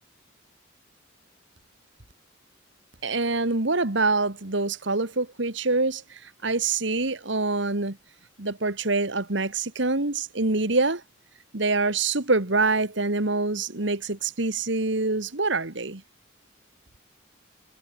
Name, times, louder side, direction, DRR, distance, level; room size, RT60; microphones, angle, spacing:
voice 1, 3.0-8.0 8.4-11.0 11.5-16.0, right 3 dB, 65° right, 2.0 m, -25 dB
head